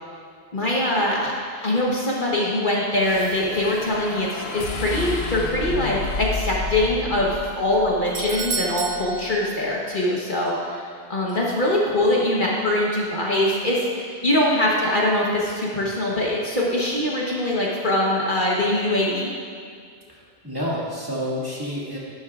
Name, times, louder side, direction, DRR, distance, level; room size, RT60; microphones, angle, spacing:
voice 1, 0.5-1.3 1.6-19.3, left 1 dB, 45° left, -4 dB, 1.2 m, -23 dB
sound 1, 3.0-9.4, left 4 dB, 65° left, 1.0 m, -32 dB
Doorbell, 7.7-10.2 10.5-10.6 11.3-11.4, right 5 dB, 75° right, 0.3 m, -32 dB
voice 2, 20.1-22.0, equal, 20° right, -7 dB, 2.0 m, -29 dB
11.5 x 11.5 x 2.4 m, 2.2 s
omnidirectional pair, 1.2 m